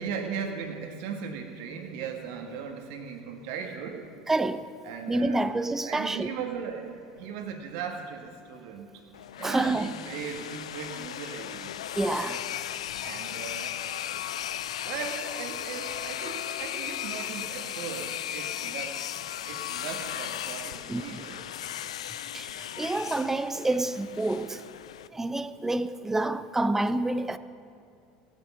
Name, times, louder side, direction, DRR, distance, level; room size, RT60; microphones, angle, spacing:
voice 1, 0.0-4.1 4.8-5.5 5.8-8.9 9.4-11.7 13.0-13.8 14.8-21.4, right 6 dB, 70° right, 1.5 m, -38 dB
voice 2, 4.3-4.8 5.1-6.3 9.4-10.0 12.0-12.5 18.4-18.5 20.9-21.3 22.3-24.7 25.1-27.4, right 2 dB, 10° right, 0.6 m, -28 dB
sound 1, 9.1-25.1, left 11 dB, 85° left, 0.3 m, -36 dB
17.0 x 8.5 x 5.9 m
hypercardioid pair, 85°, 3 cm